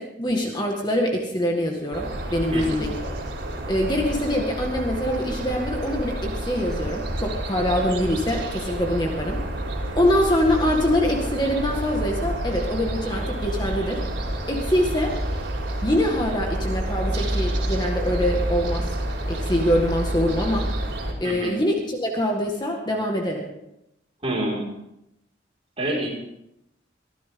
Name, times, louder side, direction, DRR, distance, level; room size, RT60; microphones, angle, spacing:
voice 1, 0.0-3.1 3.7-9.4 10.0-14.0 14.5-15.2 15.8-18.9 19.3-20.7 21.2-23.5, equal, 25° left, 1 dB, 1.9 m, -24 dB
sound 1, 1.9-21.1, right 1 dB, 75° right, 4.6 m, -29 dB
voice 2, 2.5-2.8 21.2-21.5 24.2-24.7 25.8-26.1, right 1 dB, 30° right, -3 dB, 5.5 m, -27 dB
23.5 x 15.5 x 3.8 m, 0.84 s
head